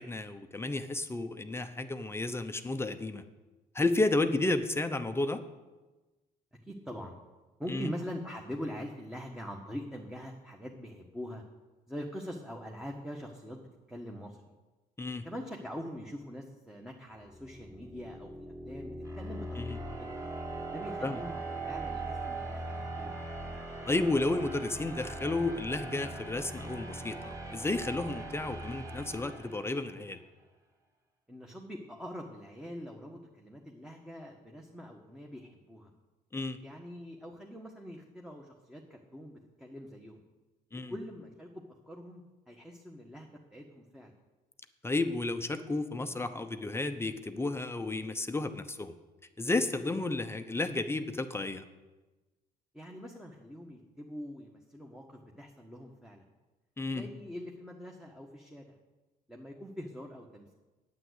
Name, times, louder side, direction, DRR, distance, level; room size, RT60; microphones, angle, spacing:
voice 1, 0.0-3.2 3.7-5.4 7.7-7.9 15.0-15.2 19.6-19.8 21.0-21.2 23.8-30.2 36.3-36.6 40.7-40.9 44.8-48.9 49.4-51.6 56.8-57.1, left 2 dB, 15° left, 8 dB, 0.8 m, -32 dB
voice 2, 6.7-7.2 7.6-11.4 11.9-14.4 15.2-20.2 20.7-23.2 31.3-35.9 36.6-40.2 40.9-44.1 52.7-56.2 56.9-58.7 59.3-60.5, equal, 5° right, 0 dB, 1.3 m, -43 dB
sound 1, 17.2-30.1, right 2 dB, 20° right, 2.6 m, -40 dB
9.3 x 9.0 x 8.0 m, 1.2 s
cardioid pair, 110°, 17 cm